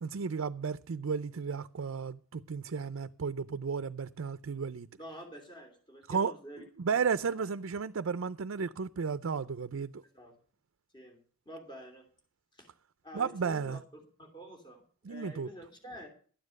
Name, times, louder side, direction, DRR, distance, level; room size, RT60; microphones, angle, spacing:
voice 1, 0.0-4.9 6.1-10.0 13.1-13.8 15.0-15.5, right 5 dB, 75° right, 0.5 m, -34 dB
voice 2, 5.0-6.6 7.4-7.5 10.1-10.3 10.9-11.2 11.4-12.1 12.5-12.7 13.0-16.1, equal, 20° left, 3.1 m, -48 dB
12.5 x 9.7 x 6.5 m
head